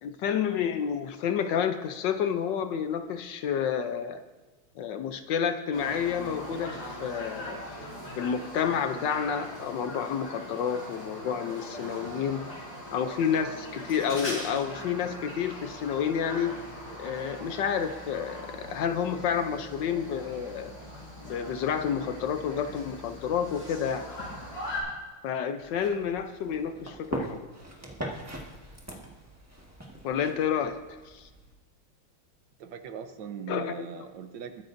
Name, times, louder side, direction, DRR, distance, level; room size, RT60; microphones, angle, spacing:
voice 1, 0.0-4.2 4.8-7.6 8.2-12.5 12.9-16.5 17.0-20.7 21.2-24.1 25.2-27.5 30.0-30.8 31.0-31.3 33.5-33.7, left 7 dB, 70° left, 8 dB, 1.3 m, -30 dB
sound 1, 5.7-24.8, left 1 dB, 55° left, 5.0 m, -41 dB
sound 2, 25.6-31.5, right 1 dB, 10° right, 1.3 m, -40 dB
voice 2, 32.6-34.6, right 7 dB, 70° right, 8 dB, 1.4 m, -40 dB
21.5 x 10.5 x 2.6 m, 1.2 s
omnidirectional pair, 2.2 m